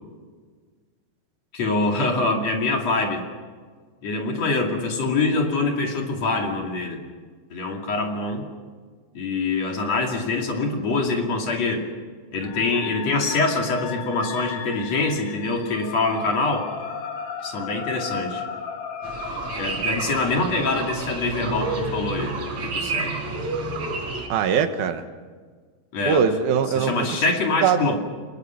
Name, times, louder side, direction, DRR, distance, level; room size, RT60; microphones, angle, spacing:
voice 1, 1.5-3.2 4.0-7.0 7.5-8.4 9.1-11.9 12.3-16.7 17.4-18.5 19.6-22.4 22.6-23.2 25.9-26.2 26.8-28.0, left 3 dB, 50° left, 2 dB, 3.5 m, -24 dB
sound 1, 12.4-20.5, left 7 dB, 75° left, 3.2 m, -35 dB
sound 2, 19.0-24.3, right 3 dB, 50° right, 5.1 m, -29 dB
voice 2, 24.3-25.0 26.1-27.1 27.6-28.0, right 7 dB, 85° right, 8 dB, 3.2 m, -21 dB
30.0 x 20.0 x 5.9 m, 1.5 s
omnidirectional pair, 4.2 m